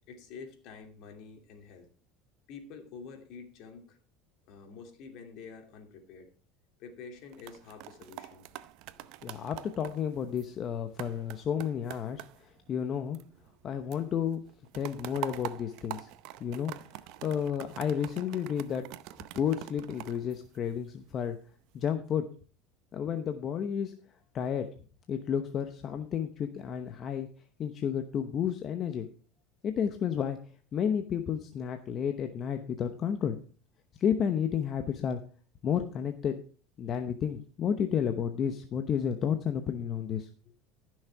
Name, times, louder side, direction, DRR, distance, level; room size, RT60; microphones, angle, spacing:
voice 1, 0.0-1.9 2.5-4.0 4.5-6.3 6.8-8.5, left 5 dB, 60° left, 4 dB, 2.7 m, -48 dB
sound 1, 7.2-13.6 13.9-21.1 21.6-21.9, right 15 dB, 65° right, 0.6 m, -45 dB
voice 2, 9.2-13.2 13.6-14.4 14.7-16.1 16.4-16.8 17.2-18.9 19.3-21.4 21.7-22.3 22.9-23.9 24.3-24.7 25.1-27.3 27.6-29.1 29.6-30.4 30.7-33.4 34.0-35.2 35.6-36.4 36.8-40.3, left 8 dB, 40° left, 7 dB, 0.9 m, -31 dB
14.5 x 6.4 x 4.7 m, 0.40 s
supercardioid pair, 125°, 0 cm